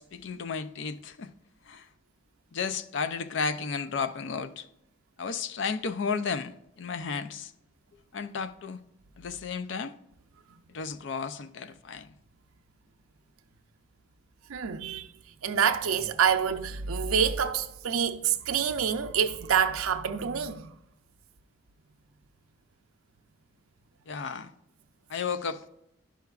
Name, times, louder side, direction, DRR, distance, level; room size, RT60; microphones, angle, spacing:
voice 1, 0.0-1.3 1.7-1.9 2.5-4.7 5.2-7.5 8.1-8.8 9.2-9.9 10.7-12.1 24.1-24.5 25.1-25.6, left 5 dB, 60° left, 0.4 m, -33 dB
voice 2, 14.5-15.1 15.4-20.7, right 7 dB, 85° right, 0.5 m, -27 dB
10.0 x 5.7 x 2.4 m
head